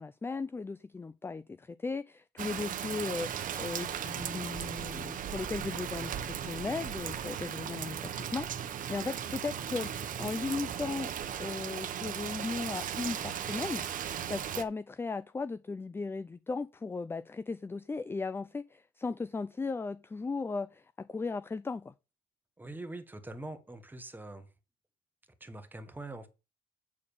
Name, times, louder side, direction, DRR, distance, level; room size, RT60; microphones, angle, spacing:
voice 1, 0.0-11.1 11.4-21.9, left 4 dB, 15° left, 0.4 m, -37 dB
Rain, 2.4-14.6, right 9 dB, 50° right, 1.0 m, -37 dB
voice 2, 22.6-24.5 25.4-26.3, right 2 dB, 10° right, 1.5 m, -43 dB
8.5 x 4.2 x 7.0 m
cardioid pair, 110°, 17 cm